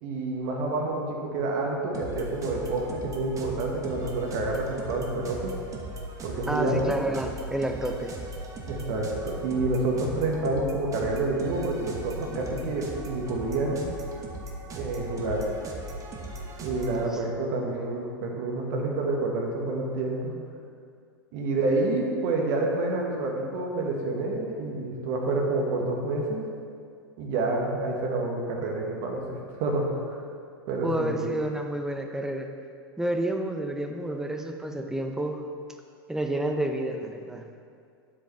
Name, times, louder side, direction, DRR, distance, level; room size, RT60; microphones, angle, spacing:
voice 1, 0.0-5.6 6.2-7.0 8.7-13.9 14.7-15.5 16.6-20.3 21.3-26.4 27.2-30.2 30.7-31.2, right 2 dB, 55° right, 0 dB, 1.6 m, -28 dB
sound 1, 1.9-17.1, right 1 dB, 25° right, 1.0 m, -38 dB
voice 2, 6.5-8.1 16.9-17.1 30.8-32.5 33.0-35.5 36.1-37.4, right 1 dB, 5° right, 4 dB, 0.7 m, -30 dB
9.0 x 7.5 x 3.4 m, 2.3 s
hypercardioid pair, 100°, 12 cm